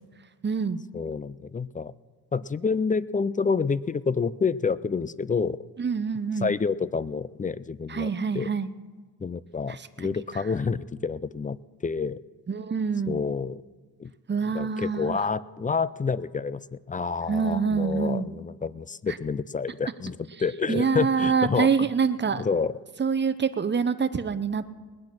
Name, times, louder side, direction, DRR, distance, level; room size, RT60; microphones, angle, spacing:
voice 1, 0.4-0.8 5.8-6.5 7.9-8.7 9.7-10.1 12.5-13.2 14.3-15.2 17.3-18.3 20.7-22.4 23.0-24.7, right 5 dB, 25° right, 12 dB, 0.7 m, -26 dB
voice 2, 0.9-1.9 2.3-5.6 6.4-8.5 9.2-11.6 11.8-12.2 13.1-13.6 14.0-14.1 14.5-21.9 22.4-22.8, left 5 dB, 20° left, 18 dB, 0.3 m, -28 dB
19.5 x 8.6 x 6.0 m, 1.4 s
cardioid pair, 85°, 44 cm